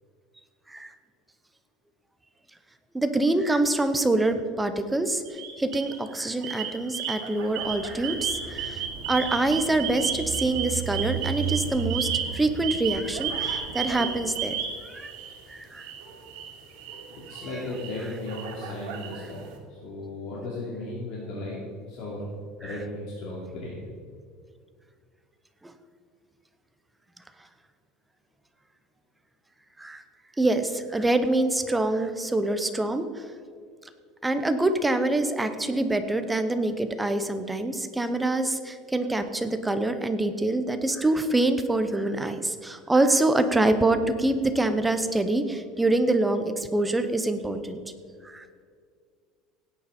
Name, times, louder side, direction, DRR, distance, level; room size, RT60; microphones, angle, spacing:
voice 1, 2.9-5.2 5.6-14.6 14.9-15.1 15.5-15.9 22.6-22.8 29.8-30.0 30.4-33.0 34.2-47.8 48.2-48.5, right 2 dB, 5° right, 8 dB, 0.8 m, -25 dB
sound 1, 5.3-6.0 6.4-15.4 15.8-19.5, right 7 dB, 70° right, 2.6 m, -34 dB
sound 2, 7.6-14.5, right 7 dB, 45° right, 1.2 m, -36 dB
voice 2, 17.3-21.6 21.9-22.2 22.6-23.8, left 2 dB, 55° left, -5 dB, 3.2 m, -36 dB
17.0 x 9.6 x 4.3 m, 2.1 s
cardioid pair, 160°, 0 cm